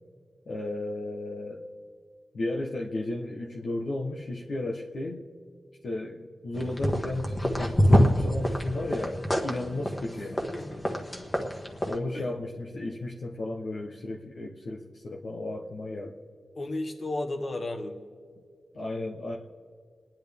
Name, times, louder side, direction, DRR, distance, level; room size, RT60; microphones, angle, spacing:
voice 1, 0.5-1.7 2.3-5.2 5.8-10.5 11.8-16.2 18.7-19.4, left 2 dB, 75° left, -1 dB, 1.1 m, -34 dB
sound 1, 6.5-12.0, equal, 20° left, 1.4 m, -26 dB
voice 2, 10.2-10.8 12.1-12.3 16.5-18.0, left 2 dB, 50° left, 6 dB, 1.5 m, -34 dB
30.0 x 10.5 x 3.6 m, 2.1 s
wide cardioid pair, 80°, 0 cm